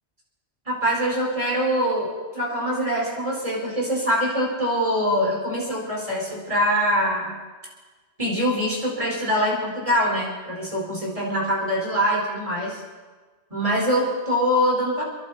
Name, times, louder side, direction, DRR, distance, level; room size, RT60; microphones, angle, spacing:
voice 1, 0.6-7.3 8.2-12.8 13.5-15.0, equal, 30° right, -4 dB, 4.9 m, -24 dB
29.0 x 11.0 x 4.3 m, 1.3 s
omnidirectional pair, 1.1 m